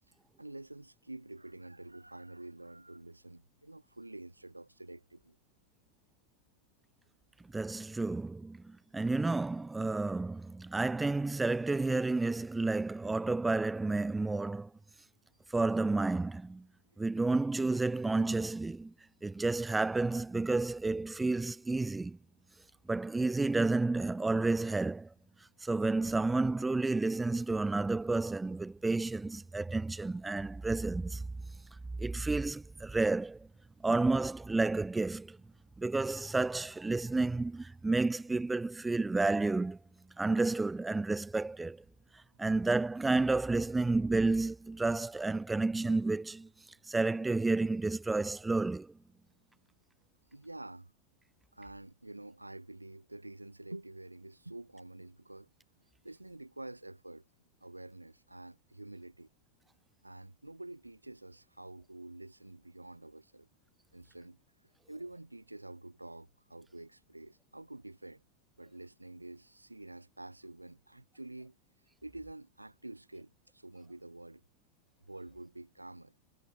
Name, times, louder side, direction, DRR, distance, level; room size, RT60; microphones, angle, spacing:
voice 1, 0.4-5.4 50.3-50.9 51.5-55.5 56.0-57.3 57.6-59.3 60.0-63.5 63.9-64.4 64.9-68.2 68.6-71.6 72.0-74.4 75.1-76.1, right 2 dB, 85° right, 6.9 m, -48 dB
voice 2, 7.5-14.7 15.5-16.7 17.0-18.9 19.2-22.2 22.9-25.1 25.6-31.3 32.0-33.5 33.8-35.4 35.8-39.8 40.2-41.8 42.4-46.5 46.9-48.9, right 3 dB, 10° right, 3.1 m, -31 dB
figure-of-eight pair, 90°, 0 cm